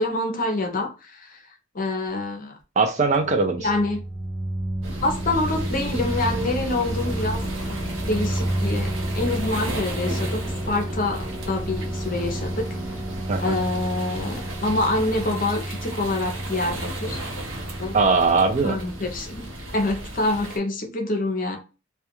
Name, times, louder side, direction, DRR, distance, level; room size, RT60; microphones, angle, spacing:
voice 1, 0.0-2.6 3.6-4.0 5.0-12.7 13.4-17.4 17.8-18.0 18.6-19.5 19.7-21.6, left 2 dB, 45° left, 0.6 m, -26 dB
voice 2, 2.8-3.7 13.3-13.6 17.9-18.8, right 4 dB, 35° right, 0.4 m, -20 dB
sound 1, 3.1-19.8, right 1 dB, 5° left, 0.7 m, -31 dB
sound 2, 4.8-20.6, right 1 dB, 80° right, 0.7 m, -35 dB
2.4 x 2.2 x 2.8 m
head